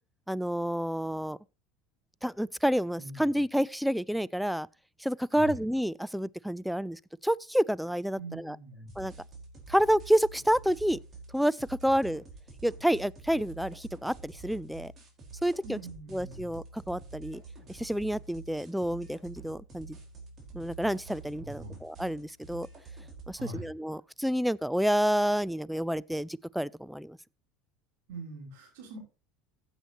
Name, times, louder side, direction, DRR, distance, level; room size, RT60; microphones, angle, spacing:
voice 1, 0.3-1.4 2.2-4.7 5.0-8.6 9.0-9.1 9.7-11.0 11.3-12.2 12.6-14.9 15.4-15.8 16.1-17.4 17.7-20.0 20.5-22.7 23.3-27.2, equal, ahead, 0.4 m, -29 dB
voice 2, 8.2-8.9 15.6-16.4 21.3-21.8 23.4-23.7 28.1-29.0, right 2 dB, 70° right, 6.0 m, -43 dB
sound 1, 8.9-23.3, right 4 dB, 35° right, 4.6 m, -48 dB
15.0 x 8.0 x 3.0 m
hypercardioid pair, 80°, 0 cm